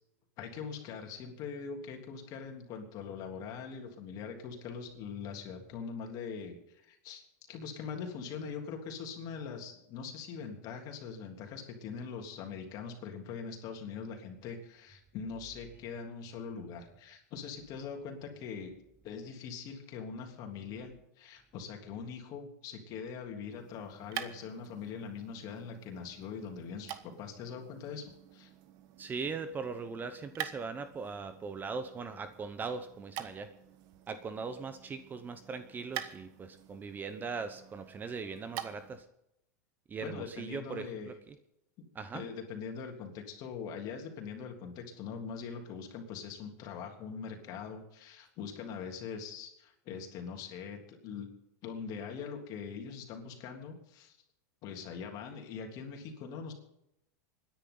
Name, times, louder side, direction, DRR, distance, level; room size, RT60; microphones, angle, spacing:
voice 1, 0.4-7.2 7.5-18.7 19.0-28.5 40.0-41.1 42.1-51.3 51.6-54.2 54.6-56.5, left 6 dB, 45° left, 2 dB, 3.3 m, -42 dB
sound 1, 23.5-39.1, right 12 dB, 50° right, 1.3 m, -47 dB
voice 2, 29.0-33.5 34.1-39.0 39.9-41.3 41.9-42.2, right 5 dB, 20° right, 10 dB, 0.9 m, -40 dB
26.0 x 10.5 x 4.0 m, 0.81 s
supercardioid pair, 125°, 9 cm